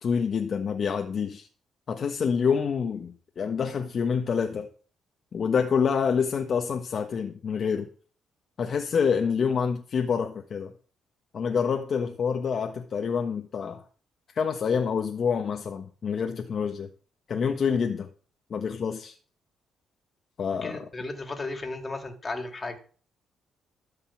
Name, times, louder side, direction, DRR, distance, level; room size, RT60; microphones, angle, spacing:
voice 1, 0.0-1.5 1.9-4.7 5.3-7.9 8.6-10.7 11.3-13.8 14.3-16.9 17.3-18.1 18.5-19.1 20.4-20.8, left 6 dB, 50° left, 4 dB, 1.2 m, -27 dB
voice 2, 20.6-22.8, left 2 dB, 30° left, 6 dB, 2.4 m, -35 dB
13.0 x 5.4 x 7.2 m, 0.42 s
cardioid pair, 90°, 0 cm